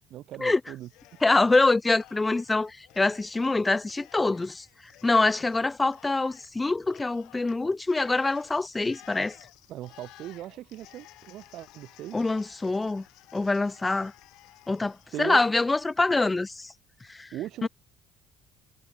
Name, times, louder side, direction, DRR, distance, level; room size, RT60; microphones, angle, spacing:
voice 1, 0.1-0.9 9.7-12.3 15.1-15.4 17.3-17.7, right 13 dB, 65° right, 1.1 m, -38 dB
Cheering, 0.8-1.6 1.9-16.3, left 18 dB, 75° left, 6.2 m, -55 dB
voice 2, 1.2-4.6 5.0-9.4 12.1-13.0 13.3-14.1 14.7-16.7 17.1-17.3 17.6-17.7, left 3 dB, 20° left, 0.5 m, -25 dB
supercardioid pair, 75°, 0 cm